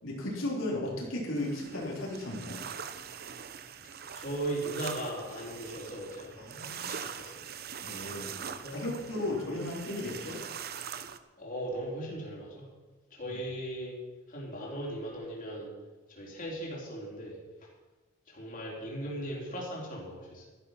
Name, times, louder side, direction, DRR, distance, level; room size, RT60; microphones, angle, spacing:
voice 1, 0.0-2.6 6.4-6.9 7.8-8.3 8.7-10.4, left 1 dB, 75° left, -3 dB, 3.5 m, -35 dB
sound 1, 1.4-11.2, right 7 dB, 50° right, 0.8 m, -43 dB
voice 2, 4.1-6.4 6.8-7.4 8.6-8.8 11.4-12.7 13.1-14.0 14.3-15.7 16.1-17.4 18.3-20.5, right 1 dB, 40° left, -3 dB, 3.8 m, -38 dB
13.0 x 11.5 x 5.8 m, 1.2 s
head